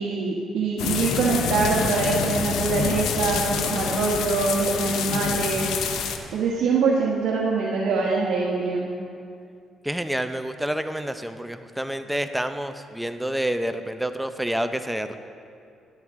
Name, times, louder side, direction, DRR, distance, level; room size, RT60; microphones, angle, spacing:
voice 1, 0.0-6.0 6.3-8.9, right 4 dB, 80° right, -3 dB, 1.2 m, -24 dB
sound 1, 0.8-6.2, left 7 dB, 85° left, 0.8 m, -27 dB
voice 2, 9.8-15.2, right 1 dB, 5° right, 8 dB, 0.6 m, -28 dB
13.0 x 11.0 x 3.7 m, 2.4 s
cardioid pair, 90°, 0 cm